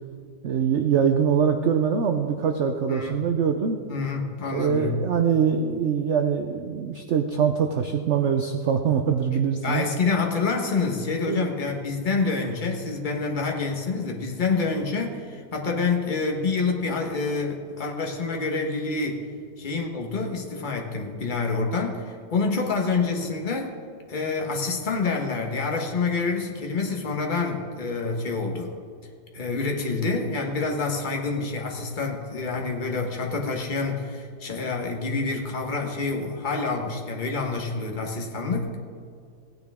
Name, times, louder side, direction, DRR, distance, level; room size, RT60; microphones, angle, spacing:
voice 1, 0.4-3.8 4.5-9.8 11.3-11.5, right 7 dB, 70° right, 5 dB, 0.6 m, -23 dB
voice 2, 3.9-4.9 9.6-19.3 19.6-23.8 24.1-28.7 29.3-38.8, left 4 dB, 30° left, 1 dB, 1.2 m, -27 dB
16.5 x 9.5 x 3.6 m, 2.4 s
omnidirectional pair, 1.9 m